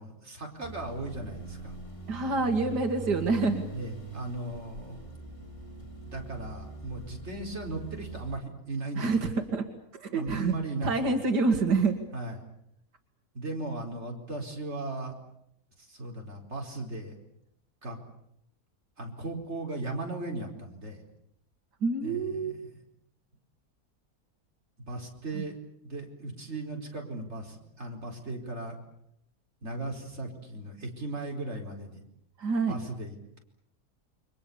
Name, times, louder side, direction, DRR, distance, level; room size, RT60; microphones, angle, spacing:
voice 1, 0.0-1.7 3.7-5.0 6.1-9.2 10.1-11.2 12.1-12.3 13.3-15.2 15.9-17.1 17.8-18.0 19.0-21.0 22.0-22.5 24.9-25.5 25.8-28.8 29.6-32.0 32.7-33.4, right 2 dB, 40° right, 1 dB, 4.9 m, -37 dB
sound 1, 0.6-8.4, right 4 dB, 20° left, 3.0 m, -42 dB
voice 2, 2.1-3.6 9.0-9.7 9.9-10.5 10.8-12.0 21.8-22.6 25.3-25.4 32.4-32.8, right 3 dB, 85° right, 5 dB, 2.6 m, -27 dB
29.0 x 24.0 x 7.0 m, 0.77 s
omnidirectional pair, 1.7 m